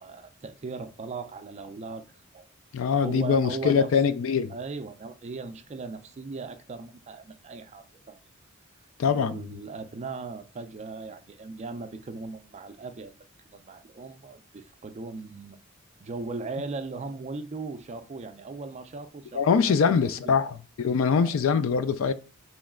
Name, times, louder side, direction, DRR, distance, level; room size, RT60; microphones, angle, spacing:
voice 1, 0.0-2.5 2.9-4.0 4.5-8.2 9.0-13.2 13.5-15.6 16.0-20.6 21.2-21.4, right 4 dB, 35° right, 0.4 m, -38 dB
voice 2, 2.7-4.5 9.0-9.4 19.3-22.1, left 6 dB, 70° left, 0.4 m, -23 dB
3.1 x 3.0 x 3.6 m
head